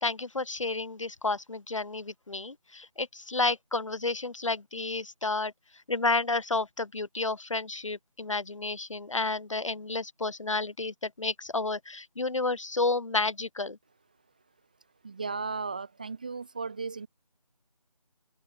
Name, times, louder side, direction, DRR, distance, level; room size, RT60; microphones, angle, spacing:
voice 1, 0.0-5.5 5.9-13.8, left 3 dB, 50° left, 2.2 m, -31 dB
voice 2, 15.0-17.1, right 4 dB, 10° right, 1.1 m, -35 dB
open air
figure-of-eight pair, 175°, 20 cm